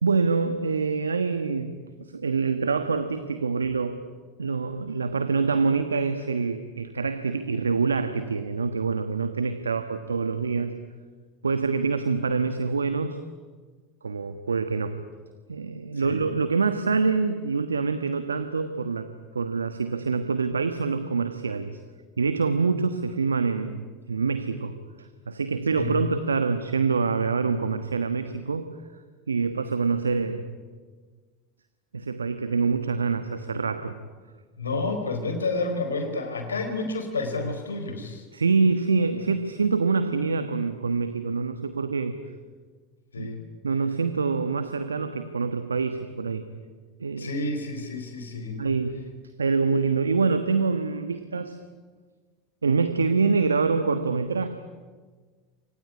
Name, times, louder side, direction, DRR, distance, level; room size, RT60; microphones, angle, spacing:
voice 1, 0.0-1.7 2.0-4.0 4.4-10.8 11.4-13.2 14.0-15.0 15.5-19.1 19.3-21.8 22.2-23.8 24.1-28.7 29.3-30.5 31.9-34.0 38.3-42.2 43.2-43.3 43.6-46.4 47.0-47.3 48.6-49.1 49.4-51.6 52.6-54.5, right 4 dB, 90° right, 10 dB, 1.3 m, -25 dB
voice 2, 34.6-38.3 43.1-43.4 47.2-48.6, left 3 dB, 85° left, 6 dB, 4.4 m, -30 dB
24.5 x 19.5 x 9.9 m, 1.5 s
hypercardioid pair, 85°, 0 cm